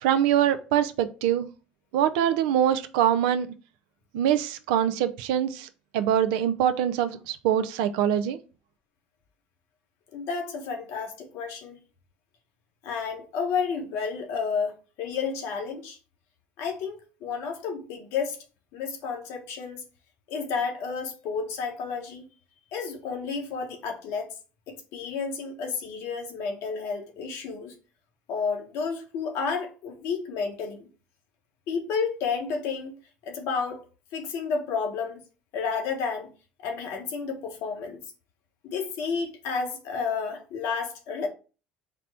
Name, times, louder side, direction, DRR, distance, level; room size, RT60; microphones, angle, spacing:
voice 1, 0.0-1.5 1.9-3.5 4.1-5.7 5.9-8.4, right 10 dB, 75° right, 0.4 m, -24 dB
voice 2, 10.1-11.8 12.8-16.0 16.6-18.4 18.7-19.8 20.3-22.3 22.7-24.3 24.7-27.7 28.3-30.9 31.7-32.9 33.2-33.8 34.1-35.2 35.5-36.3 36.6-38.0 38.6-41.3, left 5 dB, 65° left, 1.0 m, -31 dB
4.2 x 2.0 x 4.0 m
hypercardioid pair, 70°, 5 cm